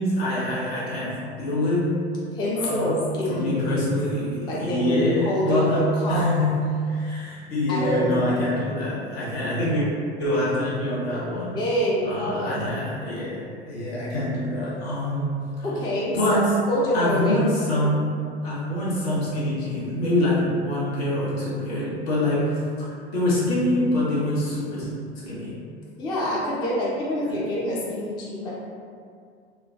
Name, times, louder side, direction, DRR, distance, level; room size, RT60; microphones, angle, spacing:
voice 1, 0.0-2.0 2.5-3.0 3.3-9.9 10.2-11.6 12.0-15.6 16.1-16.7 16.9-18.2 18.4-24.9 25.2-25.6 27.3-27.4, left 1 dB, 65° left, -7 dB, 1.0 m, -25 dB
voice 2, 2.3-4.0 4.5-6.3 7.7-8.3 11.5-12.7 15.6-16.4 16.7-17.4 26.0-28.5, equal, 15° left, -5 dB, 0.4 m, -26 dB
3.1 x 2.2 x 2.4 m, 2.2 s
figure-of-eight pair, 80°, 33 cm